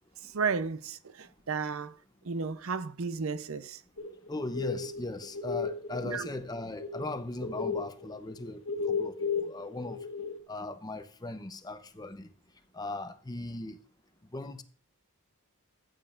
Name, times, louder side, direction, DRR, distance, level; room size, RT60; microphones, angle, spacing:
voice 1, 0.3-2.0 2.2-3.8 6.0-6.3, right 5 dB, 65° right, 0.7 m, -33 dB
sound 1, 4.0-7.2 7.4-10.4, left 6 dB, 65° left, 1.5 m, -34 dB
voice 2, 4.3-8.6 8.9-10.0 10.5-12.3 12.7-13.8 14.3-14.6, left 2 dB, 15° left, 0.7 m, -38 dB
14.5 x 8.9 x 2.5 m
head